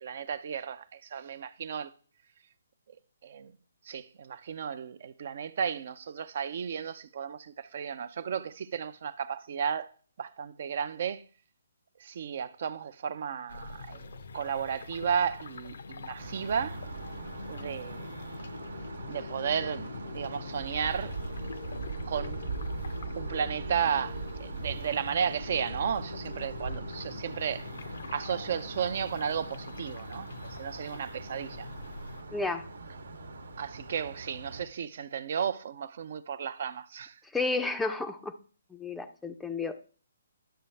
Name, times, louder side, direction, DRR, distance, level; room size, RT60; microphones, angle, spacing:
voice 1, 0.0-1.9 3.2-3.5 3.9-11.2 12.0-16.8 17.5-18.1 19.1-21.2 22.1-22.4 23.2-27.7 28.1-30.3 30.6-31.7 33.6-37.2, right 7 dB, 55° right, 0.5 m, -34 dB
sound 1, 13.5-32.2, left 4 dB, 70° left, 0.6 m, -43 dB
sound 2, 16.2-34.6, right 3 dB, 80° right, 1.1 m, -41 dB
voice 2, 32.3-32.6 37.3-38.3 38.7-39.8, left 3 dB, 5° left, 0.5 m, -31 dB
11.5 x 6.7 x 3.3 m
hypercardioid pair, 150°, 0 cm